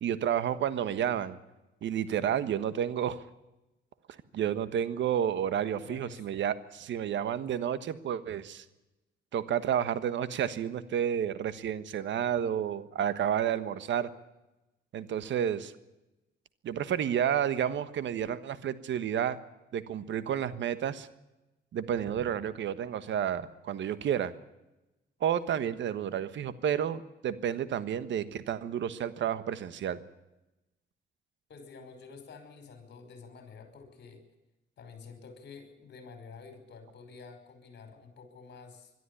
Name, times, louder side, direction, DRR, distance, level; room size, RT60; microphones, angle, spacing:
voice 1, 0.0-1.4 1.8-3.2 4.3-8.6 9.3-14.1 14.9-15.7 16.6-19.4 19.7-21.1 21.7-24.3 25.2-30.0, right 9 dB, 70° right, 14 dB, 1.4 m, -30 dB
voice 2, 5.8-6.3 31.5-34.2 34.8-38.9, left 5 dB, 60° left, 7 dB, 5.5 m, -49 dB
22.0 x 12.5 x 9.9 m, 0.99 s
cardioid pair, 90°, 20 cm